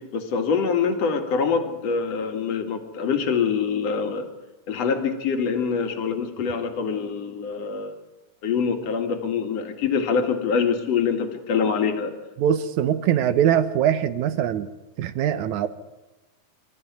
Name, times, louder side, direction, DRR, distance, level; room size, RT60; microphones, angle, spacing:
voice 1, 0.0-4.3 4.7-7.9 8.4-12.1, left 6 dB, 55° left, 5 dB, 3.0 m, -25 dB
voice 2, 12.4-14.7 15.0-15.7, right 9 dB, 75° right, 12 dB, 2.1 m, -22 dB
26.0 x 13.5 x 9.4 m, 1.1 s
omnidirectional pair, 3.6 m